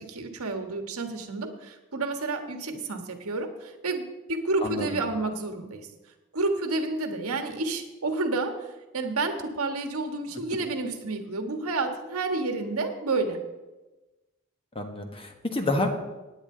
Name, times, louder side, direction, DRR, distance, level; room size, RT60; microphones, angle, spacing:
voice 1, 0.0-5.9 6.3-13.4, right 3 dB, 70° right, 5 dB, 1.5 m, -30 dB
voice 2, 14.7-15.9, left 2 dB, 25° left, 4 dB, 1.3 m, -28 dB
17.5 x 9.5 x 3.9 m, 1.1 s
head